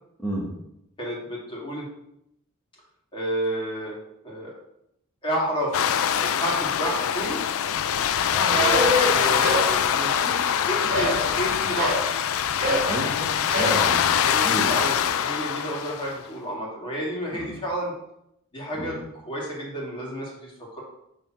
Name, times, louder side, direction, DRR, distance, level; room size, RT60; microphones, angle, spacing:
voice 1, 0.2-0.5 8.3-8.6 12.8-14.2 14.4-14.8 17.3-17.5 18.8-19.0, equal, 5° left, -8 dB, 1.4 m, -31 dB
voice 2, 1.0-1.8 3.1-4.0 4.2-4.5 5.2-5.9 6.2-7.4 8.5-12.3 12.7-12.9 14.2-17.9 18.5-19.0 19.3-20.8, right 1 dB, 25° left, -4 dB, 2.4 m, -31 dB
sound 1, 5.7-16.2, left 8 dB, 65° left, 0.4 m, -23 dB
sound 2, 8.5-9.7 10.0-10.5 10.9-12.1 12.6-12.9 13.5-13.8, equal, 35° right, 2.7 m, -25 dB
6.8 x 3.6 x 6.2 m, 0.79 s
head